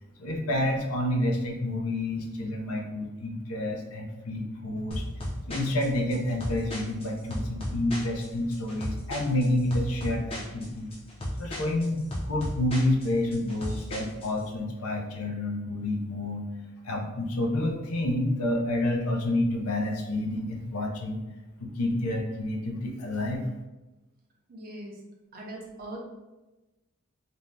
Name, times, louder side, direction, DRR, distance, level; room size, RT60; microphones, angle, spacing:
voice 1, 0.2-5.0 5.5-10.9 11.4-16.5 16.8-21.2 21.6-23.4, left 1 dB, 80° left, 2 dB, 0.5 m, -29 dB
sound 1, 4.9-14.4, equal, 25° left, 0.5 m, -35 dB
voice 2, 24.5-25.0 25.3-26.0, right 1 dB, 40° right, -2 dB, 0.5 m, -40 dB
2.6 x 2.1 x 3.2 m, 1.1 s
head